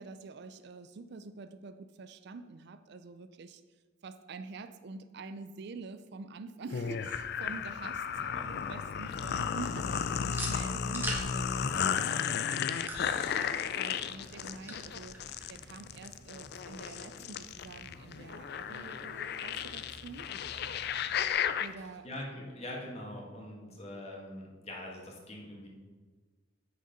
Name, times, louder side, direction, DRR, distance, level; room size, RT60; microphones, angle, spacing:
voice 1, 0.0-3.6 4.0-8.1 8.4-12.5 13.8-20.3 21.6-22.1 23.6-23.8, right 3 dB, 60° right, 11 dB, 0.4 m, -46 dB
sound 1, 6.7-21.7, left 7 dB, 55° left, 0.4 m, -34 dB
sound 2, 7.1-21.3, right 1 dB, 10° right, 1.3 m, -47 dB
voice 2, 8.1-8.5 22.0-25.7, left 1 dB, 35° left, -1 dB, 1.7 m, -43 dB
8.1 x 6.4 x 5.1 m, 1.4 s
head